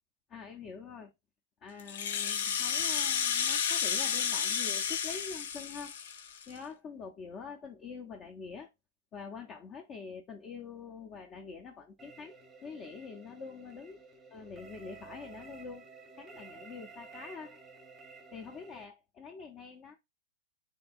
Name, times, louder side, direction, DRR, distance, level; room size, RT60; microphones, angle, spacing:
voice 1, 0.3-1.1 1.6-6.0 6.5-8.7 9.1-14.0 14.3-15.8 16.1-17.6 18.3-20.0, left 5 dB, 35° left, 0.6 m, -45 dB
Rattle (instrument), 1.8-6.6, left 7 dB, 70° left, 0.5 m, -31 dB
sound 1, 12.0-18.8, right 4 dB, 10° right, 0.8 m, -52 dB
2.7 x 2.2 x 4.0 m
hypercardioid pair, 125°, 0 cm